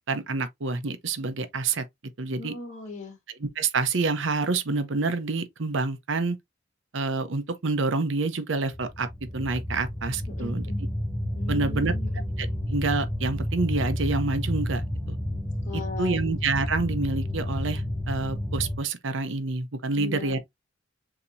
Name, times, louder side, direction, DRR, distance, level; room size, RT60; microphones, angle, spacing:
voice 1, 0.1-1.8 2.2-2.5 3.4-6.4 6.9-9.1 9.3-10.6 11.5-11.9 12.4-15.2 15.7-20.4, right 3 dB, 70° right, 0.7 m, -28 dB
voice 2, 2.4-3.2 10.4-10.8 11.3-12.2 15.7-16.3 20.0-20.4, left 2 dB, 40° left, 2.4 m, -38 dB
sound 1, 8.7-18.8, left 1 dB, 5° right, 0.8 m, -30 dB
6.9 x 2.9 x 2.6 m
head